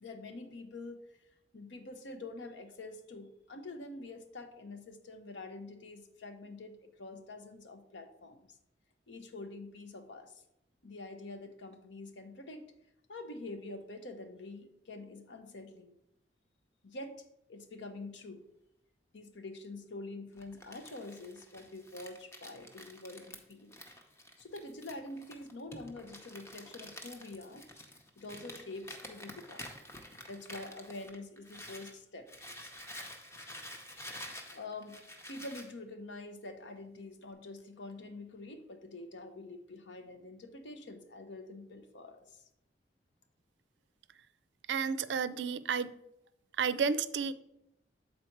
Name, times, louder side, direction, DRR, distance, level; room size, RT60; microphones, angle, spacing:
voice 1, 0.0-1.0 1.5-8.5 9.1-10.4 10.8-12.7 13.1-16.0 16.8-17.2 17.5-18.4 19.1-23.7 24.4-27.7 28.2-29.7 30.3-32.3 34.5-35.0 35.3-42.4, left 2 dB, 90° left, 7 dB, 0.8 m, -46 dB
Crumpling crinkling, 20.4-32.0 32.3-35.7, left 1 dB, 15° left, 0.6 m, -49 dB
voice 2, 44.7-45.9 46.6-47.3, right 6 dB, 80° right, 14 dB, 0.4 m, -31 dB
7.7 x 4.2 x 4.5 m, 0.82 s
head